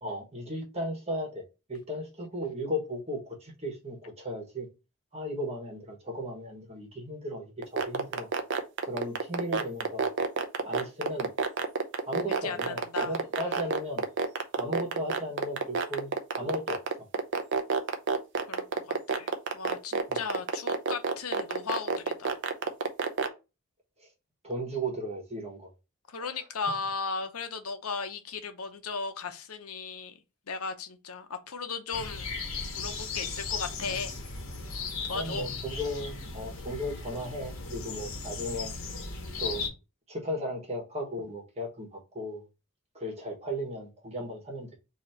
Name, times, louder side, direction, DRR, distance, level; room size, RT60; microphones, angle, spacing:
voice 1, 0.0-4.7 5.1-7.5 7.8-8.3 8.8-10.1 10.6-11.3 12.1-14.0 14.6-16.8 20.1-20.2 24.4-25.7 26.2-26.3 35.1-38.7 39.4-39.7 40.1-42.4 42.9-44.7, equal, 30° right, 1.4 m, -36 dB
sound 1, 7.6-23.3, right 4 dB, 55° right, 0.6 m, -27 dB
voice 2, 12.4-13.8 18.5-22.4 26.1-30.2 30.5-32.3 32.7-34.1 35.1-35.5, left 4 dB, 90° left, 0.8 m, -36 dB
sound 2, 31.9-39.7, left 4 dB, 65° left, 1.3 m, -37 dB
4.1 x 2.9 x 4.3 m
head